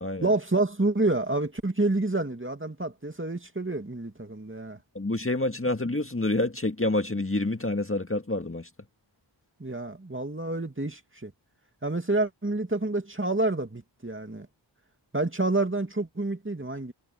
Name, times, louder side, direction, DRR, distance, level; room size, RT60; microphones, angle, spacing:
voice 1, 0.2-4.8 9.6-11.3 11.8-14.5 15.1-16.9, right 2 dB, 25° right, 2.4 m, -28 dB
voice 2, 5.0-8.7, left 2 dB, 25° left, 1.9 m, -28 dB
wide cardioid pair, 45°, 47 cm